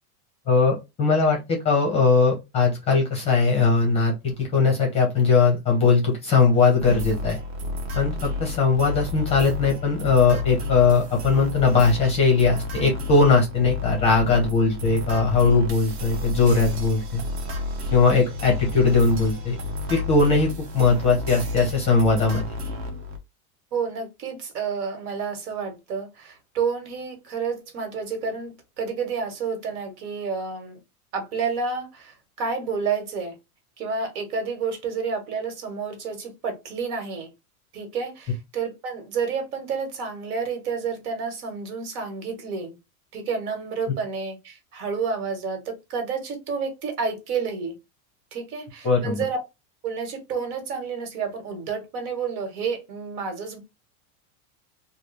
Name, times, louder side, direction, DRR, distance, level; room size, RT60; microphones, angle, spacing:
voice 1, 0.5-7.4 7.9-17.2 17.9-19.6 19.9-22.5 48.8-49.2, left 4 dB, 15° left, 0.6 m, -20 dB
sound 1, 6.8-23.2, left 2 dB, 45° right, 0.9 m, -31 dB
voice 2, 23.7-30.8 31.1-33.3 33.8-37.3 37.7-42.8 43.1-47.7 48.3-49.4 49.8-53.6, right 5 dB, 75° right, 1.6 m, -30 dB
3.2 x 2.3 x 3.3 m
supercardioid pair, 175°, 45 cm